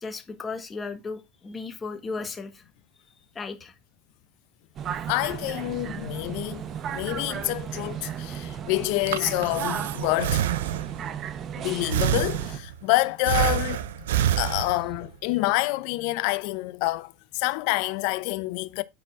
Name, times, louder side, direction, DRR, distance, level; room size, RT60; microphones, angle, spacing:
voice 1, 0.0-2.6 3.3-3.7, left 4 dB, 20° left, 1.4 m, -35 dB
sound 1, 4.8-12.6, right 8 dB, 40° right, 0.7 m, -35 dB
voice 2, 5.1-6.6 6.9-10.5 11.6-13.8 14.4-18.8, left 20 dB, 65° left, 0.6 m, -27 dB
Breathing, 8.8-11.1 11.9-12.8 13.3-15.1, right 11 dB, 80° right, 0.6 m, -27 dB
9.7 x 4.4 x 3.5 m
hypercardioid pair, 100°, 0 cm